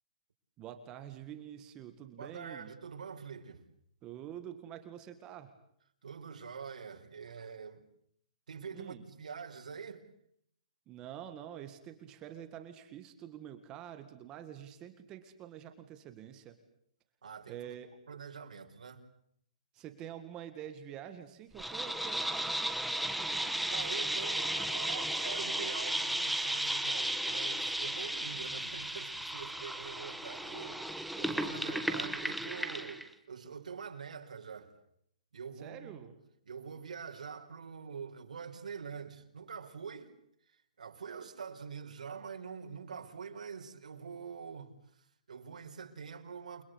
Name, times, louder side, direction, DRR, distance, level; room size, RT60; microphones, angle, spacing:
voice 1, 0.6-2.7 4.0-5.5 8.7-9.0 10.9-16.6 17.5-17.9 19.7-23.6 35.6-36.1, right 10 dB, 15° right, 2.0 m, -47 dB
voice 2, 2.2-3.6 6.0-7.8 8.5-10.0 17.2-17.6 18.1-19.0 23.7-34.7 35.3-36.1 36.4-40.1 40.5-46.6, right 6 dB, 90° right, 5.0 m, -45 dB
sound 1, 21.6-33.1, right 1 dB, ahead, 1.2 m, -35 dB
29.5 x 22.0 x 8.2 m
hypercardioid pair, 170°, 4 cm